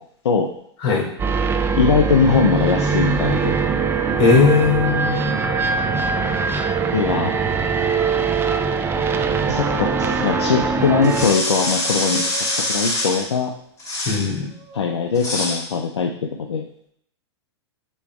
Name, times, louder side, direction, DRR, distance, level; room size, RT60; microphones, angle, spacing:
sound 1, 1.2-11.3, right 4 dB, 15° right, 0.5 m, -22 dB
voice 1, 1.7-3.6 6.9-7.4 9.5-13.5 14.7-16.6, left 5 dB, 75° left, 3 dB, 0.7 m, -21 dB
Musical instrument, 2.6-7.2 8.5-13.4 14.5-14.9, right 6 dB, 35° right, 1.5 m, -33 dB
voice 2, 4.2-5.4 14.1-14.4, left 5 dB, 40° left, -2 dB, 2.7 m, -18 dB
sound 2, 11.0-13.3 13.8-14.3 15.1-15.6, left 2 dB, 20° left, 1.9 m, -24 dB
8.3 x 3.1 x 4.7 m, 0.69 s
hypercardioid pair, 105°, 15 cm